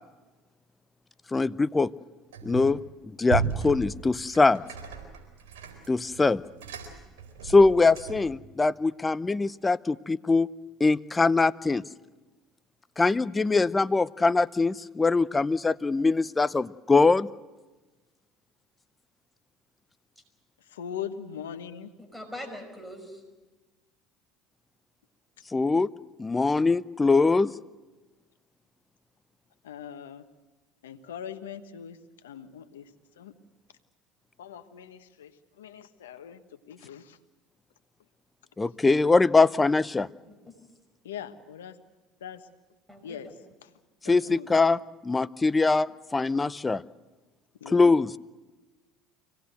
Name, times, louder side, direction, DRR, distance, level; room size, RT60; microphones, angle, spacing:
voice 1, 1.3-1.9 2.4-2.8 3.2-4.6 5.9-6.4 7.5-10.5 10.8-11.8 13.0-17.3 25.5-25.9 26.2-27.5 38.6-40.1 44.1-46.8 47.7-48.1, left 3 dB, 20° left, 16 dB, 0.6 m, -22 dB
sound 1, 2.3-2.8 3.3-8.4, right 7 dB, 80° right, 4.2 m, -35 dB
voice 2, 20.6-21.9 29.6-30.2 30.8-33.3 34.4-37.2 41.0-41.8 42.2-42.5 43.0-43.7 44.0-44.6 47.6-48.0, left 8 dB, 90° left, 9 dB, 1.3 m, -41 dB
voice 3, 22.0-23.2 40.3-40.5 42.9-43.3, left 1 dB, ahead, 5 dB, 5.3 m, -42 dB
25.0 x 18.0 x 8.0 m, 1.2 s
hypercardioid pair, 75°, 0 cm